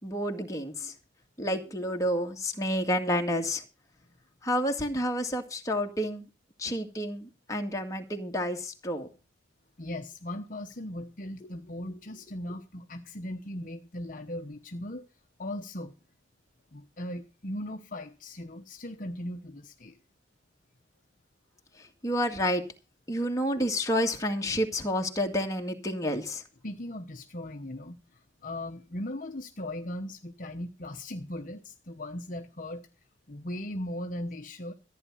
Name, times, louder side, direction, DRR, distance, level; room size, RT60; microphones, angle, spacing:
voice 1, 0.0-0.9 1.4-3.6 4.4-6.3 6.6-9.1 11.4-11.5 21.8-22.6 23.1-26.4, equal, 15° left, 2 dB, 2.0 m, -29 dB
voice 2, 9.8-15.1 15.4-15.9 16.7-20.0 26.6-32.9 33.3-34.7, left 1 dB, 45° left, 5 dB, 1.0 m, -38 dB
14.5 x 9.5 x 5.5 m, 0.31 s
head